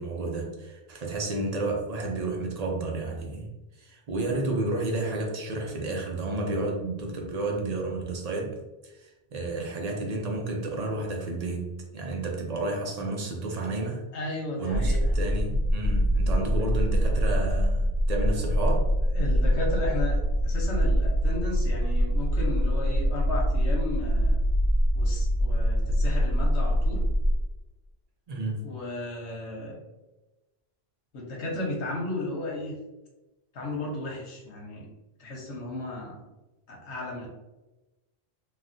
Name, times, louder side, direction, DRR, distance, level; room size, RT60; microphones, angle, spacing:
voice 1, 0.0-3.5 3.8-8.6 8.8-14.0 14.6-18.9 28.3-28.6, right 2 dB, 50° right, 1 dB, 0.5 m, -31 dB
voice 2, 14.1-15.1 16.6-16.9 19.1-24.4 24.9-27.0 28.6-29.8 31.1-32.7 33.5-34.9 35.2-36.2 36.7-37.3, left 2 dB, 85° left, -2 dB, 1.2 m, -34 dB
sound 1, 14.7-27.3, equal, 55° left, 0.9 m, -24 dB
3.5 x 2.3 x 2.6 m, 1.1 s
omnidirectional pair, 1.1 m